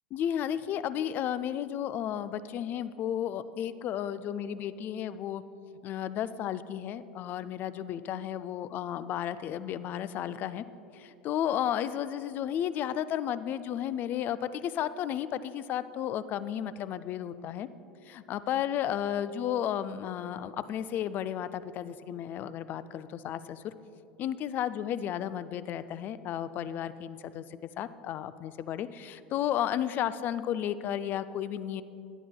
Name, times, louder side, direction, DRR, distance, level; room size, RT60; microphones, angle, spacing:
voice 1, 0.1-5.4 5.8-10.6 10.9-17.7 18.1-23.7 24.2-31.8, left 10 dB, 40° left, 14 dB, 0.4 m, -33 dB
16.5 x 10.0 x 2.2 m, 2.7 s
figure-of-eight pair, 75°, 5 cm